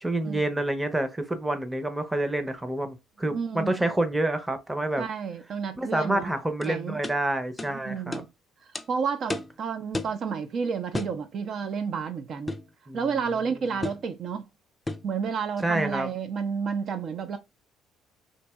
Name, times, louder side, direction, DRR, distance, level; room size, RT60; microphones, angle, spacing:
voice 1, 0.0-5.0 5.8-8.2 12.9-13.0 13.6-13.8 15.6-16.1, right 1 dB, 10° right, 0.7 m, -28 dB
voice 2, 3.3-3.8 5.0-6.3 6.7-7.0 7.7-8.3 8.9-12.5 12.9-14.4 15.0-17.4, right 6 dB, 55° right, 0.5 m, -31 dB
sound 1, 6.6-6.7 7.0-7.2 7.6-7.7 8.1-8.3 8.7-8.9 9.3-9.5 9.9-10.2 10.9-11.2 12.5-12.7 13.8-14.1 14.9-15.1, left 2 dB, 15° left, 0.4 m, -32 dB
4.0 x 2.6 x 2.3 m
cardioid pair, 95°, 0 cm